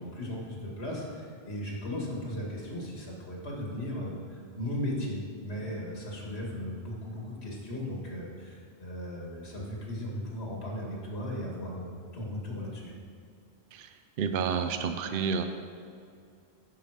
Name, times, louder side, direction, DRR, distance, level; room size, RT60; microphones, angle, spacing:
voice 1, 0.0-12.9, left 1 dB, 90° left, -2 dB, 2.1 m, -37 dB
voice 2, 14.2-15.4, right 6 dB, 65° right, 7 dB, 0.7 m, -29 dB
10.5 x 5.5 x 4.9 m, 2.3 s
omnidirectional pair, 1.1 m